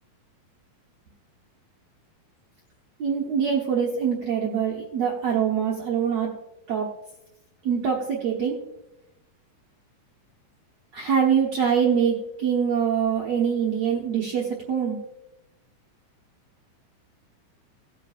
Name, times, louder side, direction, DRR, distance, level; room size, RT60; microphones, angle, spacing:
voice 1, 3.0-6.3 6.7-6.9 7.6-8.6 10.9-15.0, right 7 dB, 70° right, -3 dB, 1.6 m, -24 dB
18.0 x 8.5 x 2.4 m, 0.90 s
omnidirectional pair, 4.5 m